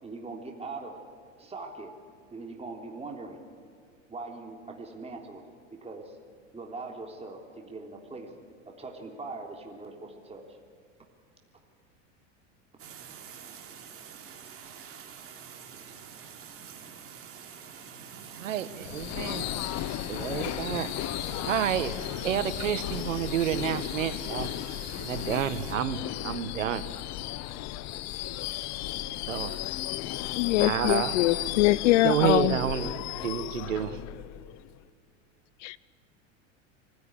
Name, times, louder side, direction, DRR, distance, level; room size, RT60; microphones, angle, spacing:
voice 1, 0.0-1.0 1.4-1.9 2.3-3.4 4.1-5.4 5.7-6.1 6.5-8.3 8.6-10.5, right 3 dB, 15° right, 2 dB, 3.5 m, -41 dB
sound 1, 12.8-25.7, right 7 dB, 35° right, 3.4 m, -46 dB
voice 2, 18.4-19.4 20.1-20.9 21.4-24.5 25.0-26.9 29.3-29.6 30.6-31.1 32.0-32.9 33.2-34.0, right 10 dB, 90° right, 12 dB, 1.5 m, -29 dB
Subway metro underground / Screech, 18.8-34.8, left 14 dB, 45° left, 0.9 m, -35 dB
voice 3, 30.3-32.6 35.6-35.8, left 17 dB, 70° left, 21 dB, 0.9 m, -23 dB
24.0 x 16.0 x 10.0 m, 2.2 s
hypercardioid pair, 105°, 37 cm